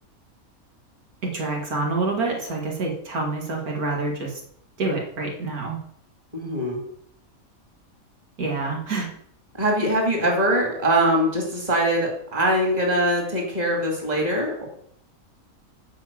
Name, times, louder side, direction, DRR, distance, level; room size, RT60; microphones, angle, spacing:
voice 1, 1.2-4.4 4.8-5.8 8.4-9.1, right 3 dB, 90° right, -1 dB, 2.7 m, -27 dB
voice 2, 6.3-6.8 9.6-14.7, right 1 dB, 30° right, 0 dB, 2.5 m, -22 dB
9.2 x 5.0 x 7.5 m, 0.67 s
omnidirectional pair, 1.5 m